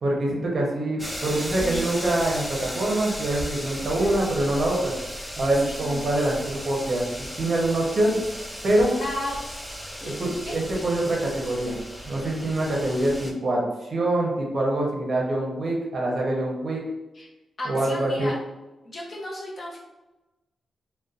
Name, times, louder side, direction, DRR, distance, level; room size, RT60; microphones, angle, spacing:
voice 1, 0.0-4.9 5.4-8.2 8.6-8.9 10.0-11.8 12.1-16.8 17.7-18.3, right 1 dB, 50° right, -2 dB, 0.6 m, -25 dB
sound 1, 1.0-13.3, equal, 5° left, 0.3 m, -36 dB
voice 2, 1.6-2.0 4.0-4.2 5.5-6.1 9.0-9.4 10.0-10.1 10.4-10.5 17.1-17.3 17.6-18.3 18.8-19.8, left 1 dB, 40° left, -3 dB, 0.7 m, -34 dB
2.6 x 2.1 x 2.4 m, 1.0 s
cardioid pair, 95°, 0 cm